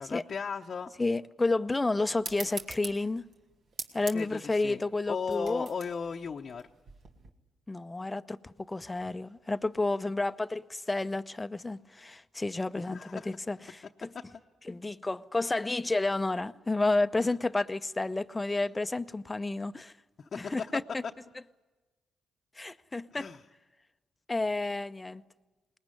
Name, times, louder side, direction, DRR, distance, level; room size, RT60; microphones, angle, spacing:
voice 1, 0.0-0.9 4.1-4.8 5.1-6.7 12.9-13.3 14.1-14.3 20.2-20.6 23.1-23.4, left 6 dB, 50° left, 0.9 m, -36 dB
voice 2, 1.0-3.2 3.9-5.7 7.7-14.1 14.7-19.9 20.4-21.0 22.6-23.3 24.3-25.2, left 2 dB, 20° left, 0.7 m, -31 dB
sound 1, 2.2-7.3, right 4 dB, 60° right, 2.3 m, -43 dB
21.5 x 19.5 x 9.9 m
supercardioid pair, 55°, 0 cm